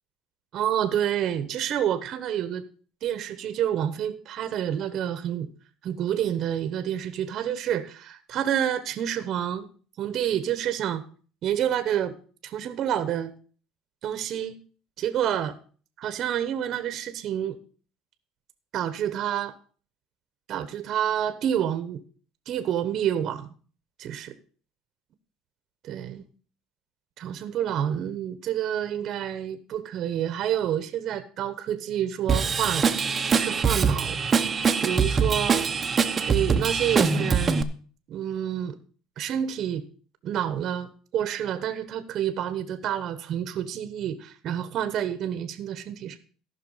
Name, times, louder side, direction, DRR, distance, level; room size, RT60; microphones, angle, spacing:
voice 1, 0.5-2.6 3.0-5.5 5.8-9.7 10.0-11.0 11.4-12.1 12.4-13.3 14.0-14.6 15.0-15.5 16.0-17.6 18.7-19.5 20.5-22.0 22.5-23.5 24.0-24.3 25.8-26.2 27.2-34.2 34.8-35.7 36.3-37.5 38.1-38.8 39.2-39.8 40.2-46.2, right 10 dB, 50° right, 11 dB, 1.0 m, -28 dB
Drum kit / Drum, 32.3-37.6, right 5 dB, 25° right, 0.8 m, -23 dB
14.0 x 5.9 x 5.6 m, 0.41 s
cardioid pair, 140°, 0 cm